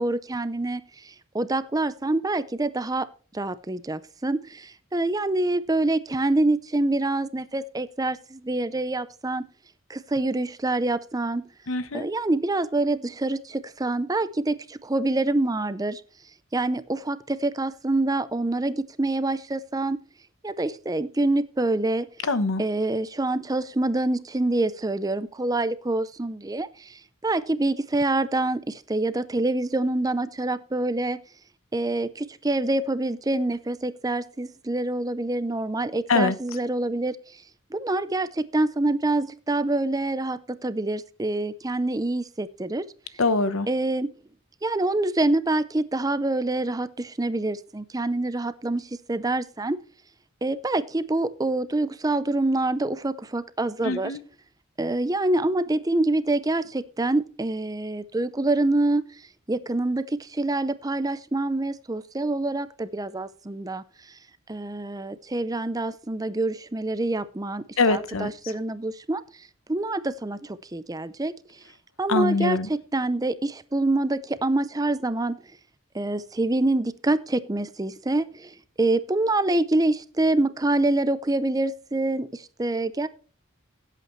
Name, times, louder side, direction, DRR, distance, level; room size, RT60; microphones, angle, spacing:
voice 1, 0.0-3.1 3.3-9.5 9.9-11.5 11.9-16.0 16.5-20.0 20.4-22.1 22.6-31.2 31.7-37.4 37.7-42.8 43.7-44.1 44.6-49.8 50.4-54.1 54.8-59.0 59.5-63.8 64.5-71.3 72.0-75.4 75.9-83.1, right 2 dB, 15° right, 0.5 m, -26 dB
voice 2, 11.7-12.1 22.2-22.6 36.1-36.3 43.2-43.7 53.8-54.2 67.8-68.3 72.1-72.7, left 3 dB, 75° left, 1.0 m, -23 dB
16.5 x 8.4 x 3.1 m
head